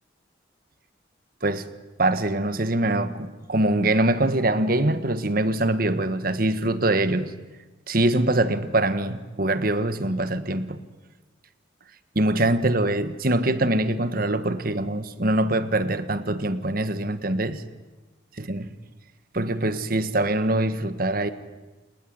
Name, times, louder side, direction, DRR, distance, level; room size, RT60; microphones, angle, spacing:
voice 1, 2.0-7.3 7.9-10.8 12.1-17.6 18.5-18.7 19.3-21.3, right 1 dB, 50° right, 1.5 m, -23 dB
29.5 x 19.5 x 9.4 m
head